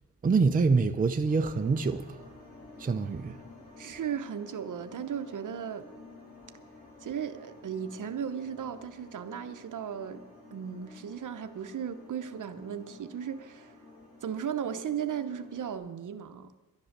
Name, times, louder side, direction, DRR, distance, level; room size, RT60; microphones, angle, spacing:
voice 1, 0.2-2.2 2.8-3.3, right 4 dB, 25° right, 0.6 m, -25 dB
sound 1, 1.3-15.8, left 2 dB, 80° left, 4.3 m, -52 dB
voice 2, 3.8-5.9 7.0-10.2 10.5-13.7 14.2-16.5, right 8 dB, 60° right, 0.9 m, -36 dB
11.5 x 10.5 x 6.6 m
wide cardioid pair, 120°, 35 cm